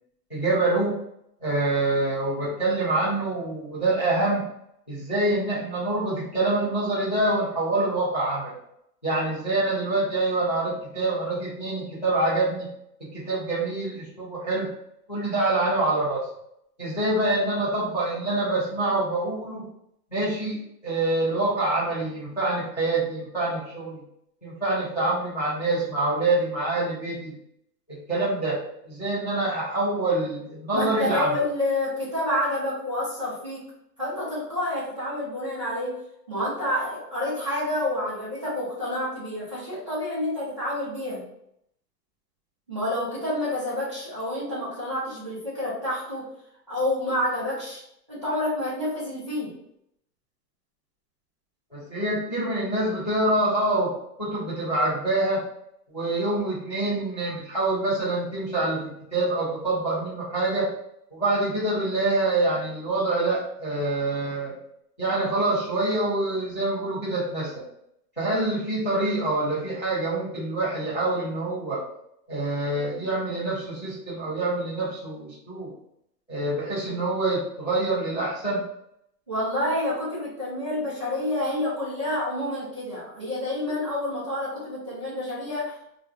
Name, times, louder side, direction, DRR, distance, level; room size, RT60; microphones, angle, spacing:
voice 1, 0.3-0.9 1.4-4.4 4.9-8.5 9.0-12.7 13.1-14.7 15.1-16.2 16.8-19.6 20.1-24.0 24.4-27.3 27.9-28.6 28.9-31.3 51.7-53.9 54.2-55.4 55.9-58.8 59.1-60.7 61.1-64.5 65.0-67.5 68.2-71.8 72.3-75.7 76.3-78.6, right 2 dB, 30° left, -8 dB, 0.4 m, -26 dB
voice 2, 30.7-33.7 34.0-36.0 36.3-41.2 42.7-46.3 46.7-47.8 48.1-49.5 79.3-85.7, left 1 dB, 20° right, -10 dB, 0.5 m, -28 dB
2.4 x 2.4 x 4.0 m, 0.75 s
hypercardioid pair, 180°, 49 cm